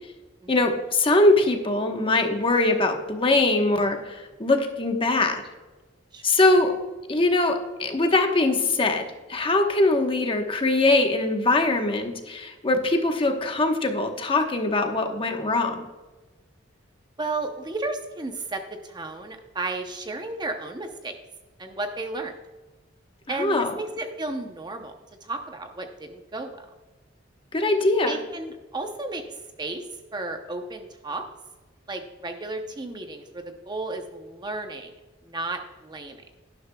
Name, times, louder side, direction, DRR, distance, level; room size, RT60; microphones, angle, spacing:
voice 1, 0.5-5.4 6.2-6.7 7.1-9.0 9.3-15.8 23.3-23.7 27.5-28.1, left 2 dB, 30° left, 4 dB, 1.0 m, -22 dB
voice 2, 6.1-6.6 17.2-21.2 21.6-22.3 23.3-24.9 25.2-26.7 28.0-29.2 29.6-29.8 30.1-31.2 31.9-34.9 35.3-36.2, right 2 dB, 25° right, 5 dB, 0.7 m, -33 dB
11.5 x 11.5 x 2.2 m, 1.2 s
head